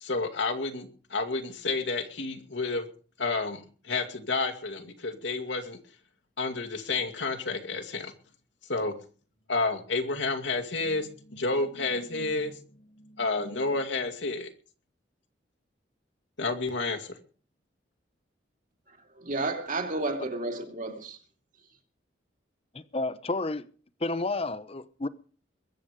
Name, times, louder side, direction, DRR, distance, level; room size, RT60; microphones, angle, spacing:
voice 1, 0.0-2.9 3.2-5.8 6.4-8.1 8.7-8.9 9.5-12.6 13.0-14.5 16.4-17.1, left 3 dB, 80° left, 2.3 m, -30 dB
voice 2, 19.2-21.2, right 2 dB, 45° right, 2.8 m, -31 dB
voice 3, 22.7-23.7 24.0-25.1, left 2 dB, 30° left, 0.8 m, -31 dB
22.0 x 8.4 x 5.1 m
head